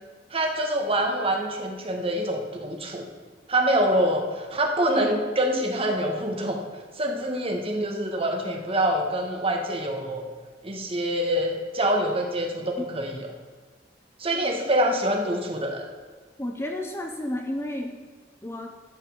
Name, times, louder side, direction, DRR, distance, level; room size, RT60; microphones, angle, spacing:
voice 1, 0.3-3.1 3.5-6.6 7.0-10.2 10.6-13.3 14.2-15.8, right 1 dB, 35° right, 2 dB, 1.8 m, -25 dB
voice 2, 16.4-18.0 18.4-18.7, left 1 dB, 15° left, 3 dB, 0.8 m, -31 dB
13.0 x 5.7 x 7.3 m, 1.5 s
head